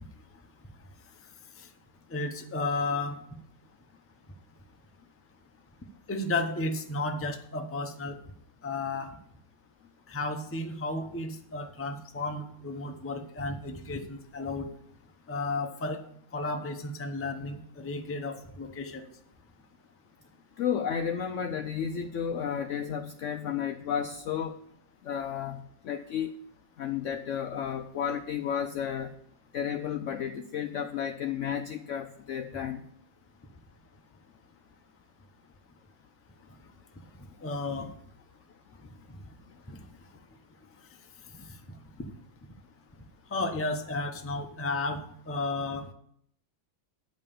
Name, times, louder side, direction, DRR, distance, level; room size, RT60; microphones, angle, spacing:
voice 1, 2.1-3.2 6.1-8.2 8.6-9.1 10.1-14.7 15.3-16.0 16.3-19.0 37.4-37.9 39.7-39.8 41.4-41.5 43.3-45.0 45.3-45.8, left 2 dB, 20° left, 4 dB, 0.3 m, -33 dB
voice 2, 20.6-24.6 25.0-26.3 26.8-29.1 29.5-32.8, left 8 dB, 80° left, 7 dB, 0.6 m, -32 dB
9.0 x 5.6 x 6.8 m, 0.69 s
omnidirectional pair, 1.9 m